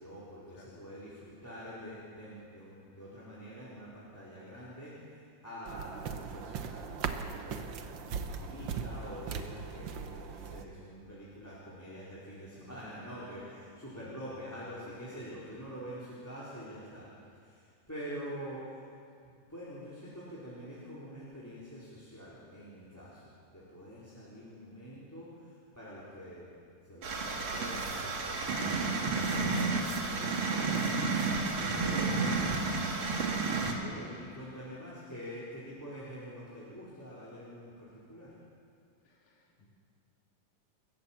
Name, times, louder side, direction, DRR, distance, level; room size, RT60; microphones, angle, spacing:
voice 1, 0.0-17.1 17.4-17.5 17.9-18.8 19.2-31.0 31.7-32.7 33.6-38.3, equal, 5° left, -8 dB, 4.1 m, -46 dB
voice 2, 0.6-0.9 13.9-14.0 39.1-39.7, left 3 dB, 85° left, -1 dB, 3.8 m, -59 dB
sound 1, 5.7-10.6, right 6 dB, 90° right, 1.0 m, -39 dB
sound 2, 27.0-33.7, right 3 dB, 45° right, 2.5 m, -31 dB
28.0 x 14.5 x 7.4 m, 2.4 s
omnidirectional pair, 3.6 m